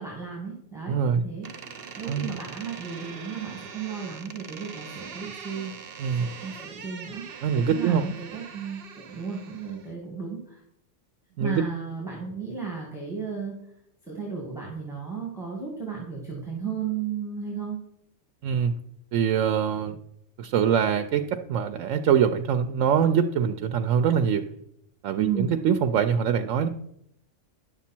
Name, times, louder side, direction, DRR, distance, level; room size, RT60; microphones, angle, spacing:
voice 1, 0.0-1.5 2.0-5.7 6.2-7.2 7.5-10.6 11.4-13.5 14.1-17.8 25.2-25.5, right 6 dB, ahead, -4 dB, 2.1 m, -34 dB
voice 2, 0.9-1.2 2.1-2.3 6.0-6.3 7.4-8.0 11.4-11.6 18.4-18.7 19.1-20.0 20.4-24.4 25.0-26.7, right 7 dB, 85° right, 8 dB, 1.0 m, -23 dB
Door, 1.4-9.9, right 6 dB, 55° right, 1.0 m, -42 dB
10.5 x 7.1 x 4.4 m, 0.75 s
omnidirectional pair, 1.3 m